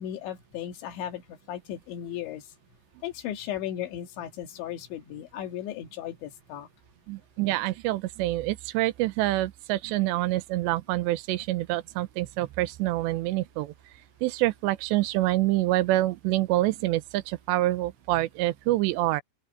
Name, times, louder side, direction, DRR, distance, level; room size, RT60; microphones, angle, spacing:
voice 1, 0.0-2.4 3.0-6.7, left 11 dB, 85° left, 4.2 m, -36 dB
voice 2, 7.1-13.7 14.2-19.2, right 17 dB, 85° right, 2.9 m, -26 dB
open air
omnidirectional pair, 5.1 m